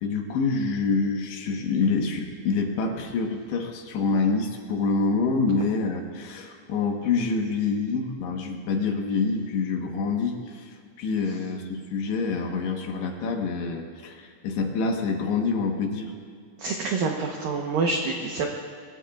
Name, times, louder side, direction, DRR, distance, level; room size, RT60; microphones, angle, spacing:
voice 1, 0.0-16.1, left 4 dB, 70° left, 2 dB, 3.1 m, -26 dB
voice 2, 16.6-18.5, right 3 dB, 85° right, 1 dB, 2.0 m, -27 dB
25.0 x 23.0 x 2.4 m, 2.1 s
omnidirectional pair, 5.7 m